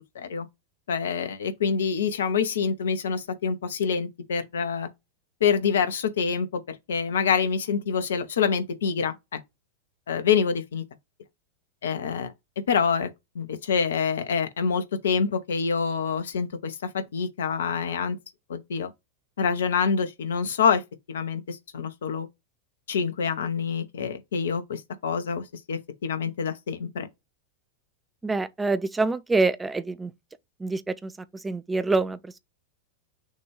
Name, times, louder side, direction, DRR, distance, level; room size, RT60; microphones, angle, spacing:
voice 1, 0.1-0.5 0.9-4.9 5.4-9.4 10.1-10.8 11.8-12.3 12.7-13.1 13.3-18.2 18.5-18.9 19.4-20.8 21.1-22.3 22.9-27.1, left 6 dB, 65° left, 0.8 m, -26 dB
voice 2, 28.2-30.1 30.6-32.4, right 3 dB, 10° right, 0.5 m, -26 dB
6.4 x 2.5 x 3.2 m
figure-of-eight pair, 90°, 0 cm